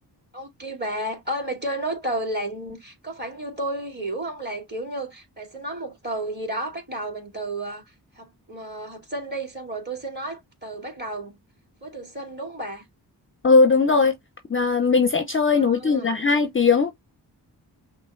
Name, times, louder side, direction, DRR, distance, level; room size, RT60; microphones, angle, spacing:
voice 1, 0.3-7.8 8.2-11.4 11.8-12.8 15.6-16.2, right 1 dB, 25° right, 2.6 m, -32 dB
voice 2, 13.4-14.1 14.5-17.0, left 4 dB, 30° left, 0.6 m, -19 dB
6.0 x 2.3 x 2.4 m
cardioid pair, 50°, 41 cm